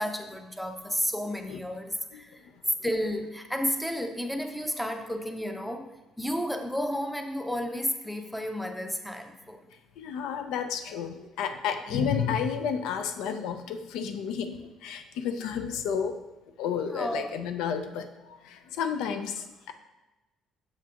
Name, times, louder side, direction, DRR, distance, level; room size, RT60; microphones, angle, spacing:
voice 1, 0.0-2.5 2.8-9.7 11.9-12.1 16.9-17.3, equal, ahead, 5 dB, 0.5 m, -32 dB
voice 2, 10.0-16.2 16.6-19.7, left 7 dB, 90° left, 8 dB, 0.5 m, -31 dB
7.3 x 5.9 x 2.9 m, 1.1 s
cardioid pair, 150°, 0 cm